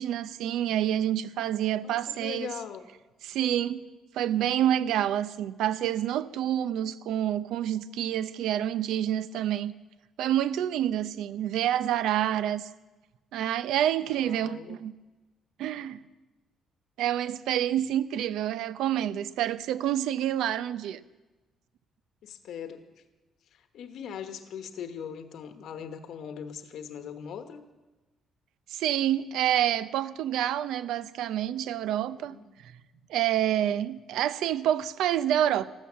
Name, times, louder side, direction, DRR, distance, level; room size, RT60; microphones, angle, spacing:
voice 1, 0.0-2.5 3.2-3.9 4.1-9.7 10.2-12.7 13.3-14.9 15.6-16.0 17.0-21.0 28.7-32.4 32.6-32.7 33.1-35.6, right 11 dB, 80° right, 0.6 m, -28 dB
voice 2, 1.8-2.9 14.1-14.8 22.2-23.0 23.5-27.6 32.0-32.5, left 8 dB, 60° left, 1.1 m, -40 dB
14.5 x 13.0 x 7.3 m
cardioid pair, 155°, 0 cm